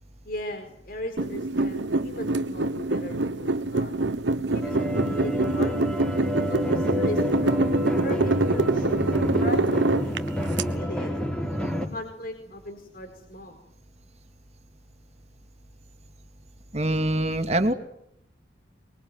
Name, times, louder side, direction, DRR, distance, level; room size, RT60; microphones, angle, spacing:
voice 1, 0.2-4.0 4.5-5.9 6.5-7.6 8.0-11.1 11.9-13.6, left 1 dB, 50° left, 4 dB, 4.6 m, -37 dB
sound 1, 1.2-10.6, right 2 dB, 80° right, 1.3 m, -25 dB
sound 2, 4.6-11.9, equal, 5° left, 4.2 m, -29 dB
voice 2, 16.7-17.7, right 1 dB, 35° right, 8 dB, 2.4 m, -24 dB
24.0 x 23.0 x 9.5 m, 0.74 s
head